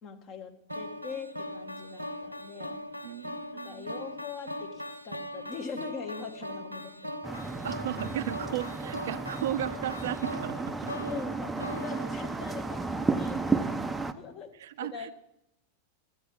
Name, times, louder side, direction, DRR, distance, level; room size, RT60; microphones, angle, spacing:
voice 1, 0.0-2.9 3.6-7.1 11.0-14.5 14.8-15.1, left 5 dB, 35° left, 5 dB, 1.5 m, -42 dB
sound 1, 0.7-12.9, equal, 85° right, 0.8 m, -40 dB
voice 2, 3.0-3.9 7.6-11.1 14.6-15.1, right 11 dB, 60° right, 13 dB, 0.5 m, -35 dB
sound 2, 7.2-14.1, right 3 dB, 10° right, 0.6 m, -33 dB
13.0 x 8.0 x 5.5 m, 0.84 s
figure-of-eight pair, 90°, 0 cm